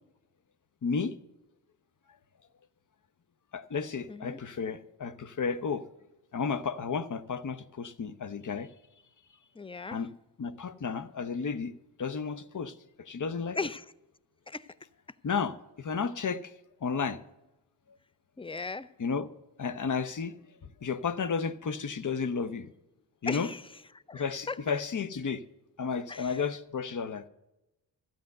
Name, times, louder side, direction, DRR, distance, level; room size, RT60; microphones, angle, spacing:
voice 1, 0.8-1.1 3.5-5.8 6.3-8.7 9.9-10.1 10.4-11.7 12.0-12.7 13.1-13.6 15.2-16.4 16.8-17.2 19.0-19.3 19.6-20.3 20.8-22.7 23.2-23.5 24.1-25.4 25.8-27.2, left 5 dB, 40° left, 0.9 m, -32 dB
voice 2, 4.1-4.4 9.6-10.0 13.6-13.9 14.5-14.7 18.4-18.9 23.3-23.6 24.1-24.6 26.1-26.4, left 4 dB, 10° left, 0.6 m, -37 dB
13.0 x 9.3 x 6.6 m
supercardioid pair, 50°, 46 cm